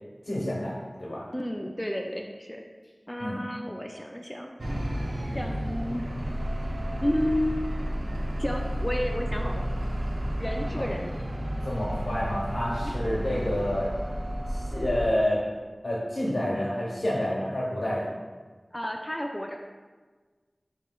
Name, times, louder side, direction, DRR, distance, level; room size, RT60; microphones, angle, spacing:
voice 1, 0.2-1.3 3.2-3.4 10.7-10.8 11.6-13.9 14.5-15.4 15.8-18.1, left 1 dB, 85° left, -6 dB, 0.9 m, -29 dB
voice 2, 1.3-2.6 3.1-4.6 5.3-6.1 7.0-7.6 8.4-9.6 10.4-11.1 12.7-13.0 18.7-19.6, equal, 15° left, 2 dB, 0.3 m, -31 dB
sound 1, 4.6-15.1, equal, 90° right, 0.5 m, -31 dB
7.5 x 3.0 x 2.3 m, 1.4 s
wide cardioid pair, 40°, 0 cm